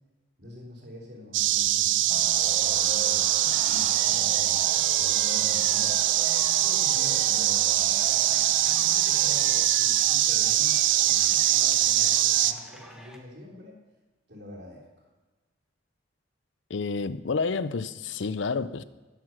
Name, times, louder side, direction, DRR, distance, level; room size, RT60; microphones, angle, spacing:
voice 1, 0.4-5.9 6.6-13.7 14.3-15.1, left 1 dB, 60° right, 3.7 m, -45 dB
sound 1, 1.3-12.5, right 13 dB, 80° right, 0.5 m, -23 dB
sound 2, 2.1-9.7, right 3 dB, 40° right, 0.7 m, -39 dB
sound 3, 3.5-13.2, equal, 5° right, 1.2 m, -47 dB
voice 2, 16.7-18.8, left 4 dB, 75° left, 0.6 m, -29 dB
11.5 x 9.9 x 6.0 m
head